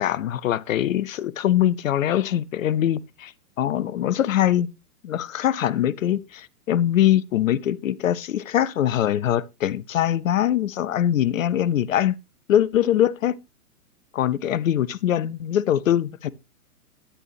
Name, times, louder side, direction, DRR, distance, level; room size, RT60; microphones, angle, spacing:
voice 1, 0.0-3.3 3.6-4.7 5.0-12.1 12.5-13.4 14.1-16.3, left 11 dB, 60° left, 0.6 m, -22 dB
9.9 x 9.9 x 2.9 m
figure-of-eight pair, 110°, 45 cm